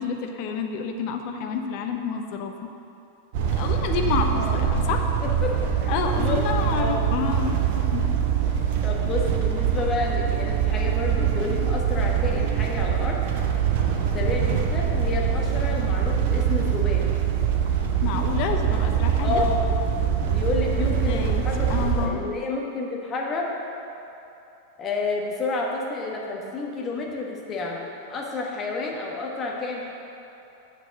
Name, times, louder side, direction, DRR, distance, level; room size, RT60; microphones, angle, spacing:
voice 1, 0.0-2.7 3.5-5.1 5.9-7.6 7.9-8.1 8.4-8.5 11.5-11.6 18.0-19.4 20.8-22.2, left 6 dB, 45° left, 4 dB, 0.8 m, -29 dB
sound 1, 3.3-22.1, right 8 dB, 50° right, 0.8 m, -24 dB
voice 2, 5.2-7.1 8.5-13.2 14.1-17.1 19.2-19.7 20.2-21.7 22.0-23.5 24.8-29.9, left 3 dB, 25° left, -1 dB, 1.4 m, -30 dB
6.9 x 6.7 x 6.2 m, 2.9 s
figure-of-eight pair, 90°, 0 cm